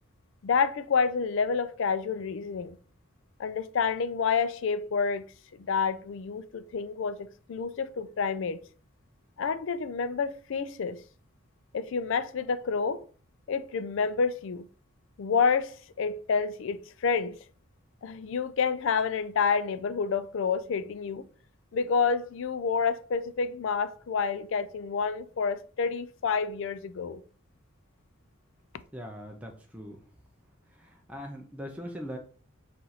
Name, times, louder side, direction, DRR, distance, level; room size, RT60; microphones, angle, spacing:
voice 1, 0.4-2.8 3.4-5.2 5.6-8.6 9.4-11.0 11.7-13.0 13.5-14.7 15.2-17.3 18.0-21.3 21.7-27.2, left 5 dB, 60° left, 0.4 m, -29 dB
voice 2, 28.9-30.0 30.7-32.2, equal, 5° right, 0.5 m, -41 dB
4.3 x 2.5 x 4.0 m
head